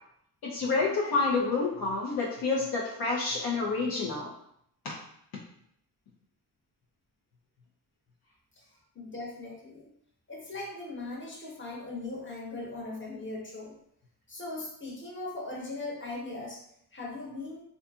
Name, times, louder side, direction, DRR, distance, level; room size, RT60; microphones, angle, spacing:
voice 1, 0.4-4.3, left 3 dB, 60° left, -3 dB, 0.6 m, -28 dB
voice 2, 8.9-9.9 10.3-13.7 14.3-16.6 16.9-17.6, left 2 dB, 30° left, -3 dB, 1.0 m, -39 dB
2.6 x 2.6 x 2.3 m, 0.72 s
cardioid pair, 65°, 41 cm